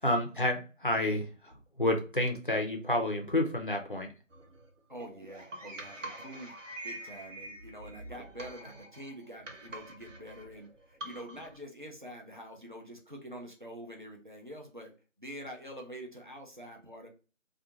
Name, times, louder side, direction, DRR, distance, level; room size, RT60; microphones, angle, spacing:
voice 1, 0.0-1.5 1.8-4.1, left 1 dB, 45° left, 3 dB, 0.4 m, -29 dB
sound 1, 4.3-11.6, right 1 dB, 65° right, 0.8 m, -46 dB
voice 2, 4.9-6.5 6.8-14.9 15.2-17.1, equal, 40° right, 1 dB, 0.5 m, -46 dB
2.4 x 2.2 x 2.8 m, 0.34 s
figure-of-eight pair, 175°, 39 cm